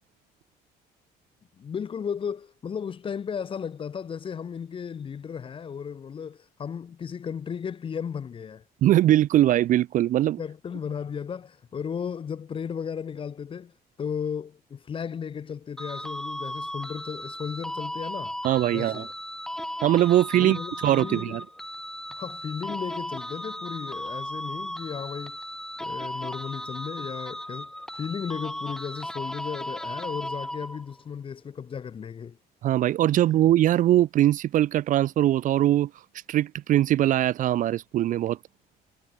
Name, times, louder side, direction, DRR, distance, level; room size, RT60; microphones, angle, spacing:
voice 1, 1.6-8.6 10.4-13.7 14.0-18.4 18.7-19.1 20.3-21.4 22.1-25.4 25.8-32.4, left 7 dB, 30° left, 0.6 m, -35 dB
voice 2, 8.8-10.4 18.4-19.1 19.8-21.4 32.6-35.9 36.3-38.4, right 13 dB, 50° right, 0.4 m, -21 dB
sound 1, 15.8-31.0, left 1 dB, 5° left, 1.5 m, -36 dB
cardioid pair, 110°, 17 cm